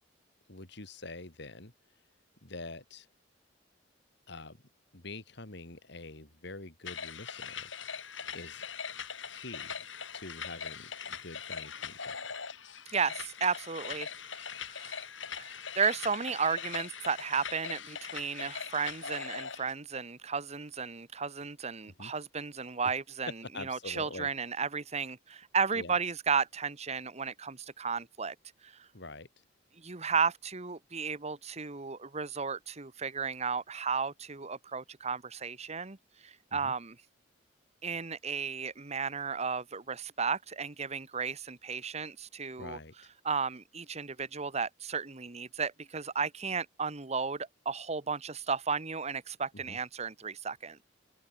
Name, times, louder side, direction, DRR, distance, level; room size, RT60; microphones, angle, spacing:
voice 1, 0.5-1.7 2.4-3.1 4.3-4.6 4.9-7.7 8.3-8.7 9.3-9.9 10.1-12.2 22.0-22.1 23.5-24.3 25.7-26.0 28.9-29.3 36.5-36.7 42.6-42.9 49.5-49.8, left 2 dB, 65° left, 3.2 m, -45 dB
sound 1, 6.9-19.7, left 6 dB, 80° left, 6.2 m, -41 dB
voice 2, 12.9-14.4 14.7-15.1 15.3-23.3 23.6-28.3 28.6-28.7 29.8-36.0 36.2-36.9 37.8-42.8 43.2-50.8, right 5 dB, 35° right, 1.3 m, -34 dB
open air
head